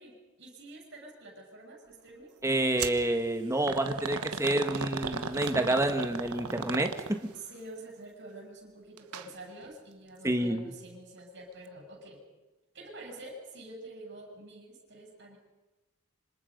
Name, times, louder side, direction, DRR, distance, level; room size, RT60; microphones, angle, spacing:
voice 1, 0.0-2.3 3.9-4.4 7.3-12.2 12.7-15.4, right 1 dB, 50° right, 0 dB, 7.8 m, -47 dB
voice 2, 2.4-7.3 10.2-10.7, right 1 dB, 15° right, 6 dB, 1.5 m, -28 dB
sound 1, 2.8-3.0 3.7-7.4 9.0-9.3 9.6-9.7 10.6-10.7, right 5 dB, 85° right, 1.3 m, -36 dB
26.5 x 26.0 x 5.3 m, 1.1 s
head